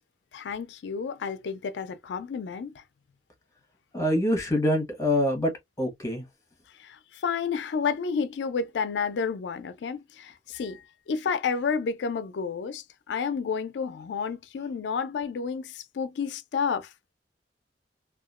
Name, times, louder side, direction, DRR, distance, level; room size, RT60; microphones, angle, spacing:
voice 1, 0.3-2.8 6.8-16.9, left 6 dB, 85° left, 0.4 m, -31 dB
voice 2, 3.9-5.5 5.8-6.2, left 1 dB, 15° left, 0.8 m, -25 dB
2.8 x 2.3 x 2.3 m
head